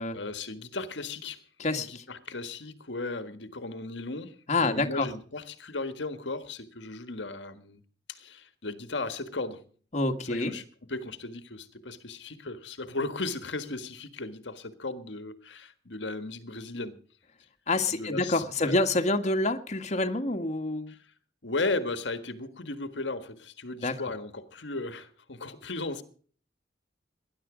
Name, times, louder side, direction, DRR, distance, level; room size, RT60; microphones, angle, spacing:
voice 1, 0.1-1.4 1.9-7.8 8.1-9.6 10.3-17.0 17.9-18.8 20.9-21.0 21.4-26.0, left 3 dB, 75° left, 1.7 m, -36 dB
voice 2, 1.6-2.0 4.5-5.1 9.9-10.5 17.7-20.9 23.8-23.9, left 2 dB, 40° left, 1.7 m, -27 dB
20.0 x 11.5 x 5.1 m
head